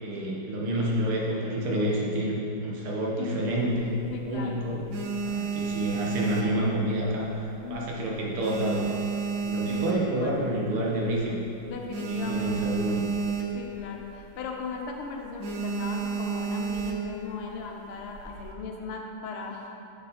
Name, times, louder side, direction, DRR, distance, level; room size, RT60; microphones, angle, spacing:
voice 1, 0.0-4.8 5.2-8.9 9.4-11.4 12.0-13.1, right 1 dB, 85° right, -3 dB, 2.0 m, -29 dB
voice 2, 3.2-3.6 4.1-4.6 7.6-8.0 9.7-10.3 11.7-12.8 13.5-19.7, left 4 dB, 85° left, 1 dB, 1.7 m, -38 dB
sound 1, 3.6-4.3 4.7-7.2 7.5-7.9 8.2-10.4 10.9-11.0 11.2-11.3 11.6-13.8 14.1-14.4 14.7-14.9 15.4-17.2 17.9-18.5, right 5 dB, 70° right, 0.8 m, -31 dB
7.1 x 5.7 x 4.2 m, 2.7 s
omnidirectional pair, 2.3 m